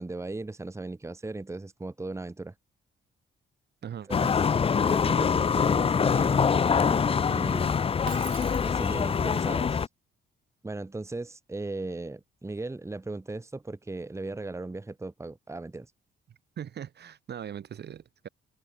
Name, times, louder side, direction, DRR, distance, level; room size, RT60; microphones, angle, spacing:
voice 1, 0.0-2.5 4.1-4.2 4.6-7.8 8.6-9.9 10.6-15.9, right 2 dB, 15° right, 1.5 m, -37 dB
voice 2, 3.8-4.3 16.6-18.3, right 9 dB, 55° right, 2.2 m, -40 dB
sound 1, 4.1-9.9, left 6 dB, 30° left, 0.5 m, -24 dB
Shatter, 8.1-9.3, right 17 dB, 85° right, 0.5 m, -44 dB
cardioid pair, 90°, 20 cm